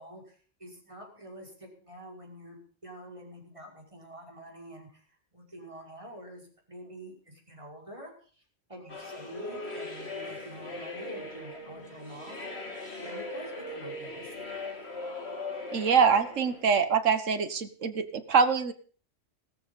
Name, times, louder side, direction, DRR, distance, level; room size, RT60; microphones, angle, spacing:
voice 1, 0.0-5.0 5.3-8.1 8.7-12.4 13.0-14.9, equal, 25° right, 0 dB, 5.4 m, -46 dB
sound 1, 8.9-16.6, left 2 dB, 55° left, 3.2 m, -39 dB
voice 2, 15.7-18.7, right 6 dB, 80° right, 10 dB, 1.7 m, -24 dB
16.5 x 14.0 x 5.4 m, 0.43 s
omnidirectional pair, 1.3 m